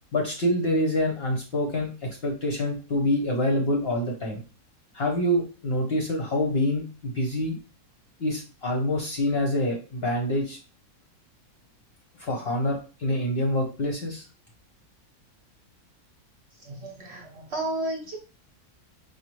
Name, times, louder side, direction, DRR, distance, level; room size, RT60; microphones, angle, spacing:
voice 1, 0.1-4.4 4.9-7.6 8.2-10.6 12.2-14.2, left 1 dB, 50° left, 0 dB, 0.8 m, -26 dB
voice 2, 16.6-18.2, right 1 dB, 50° right, 1 dB, 0.9 m, -32 dB
5.0 x 2.4 x 3.0 m, 0.36 s
omnidirectional pair, 1.6 m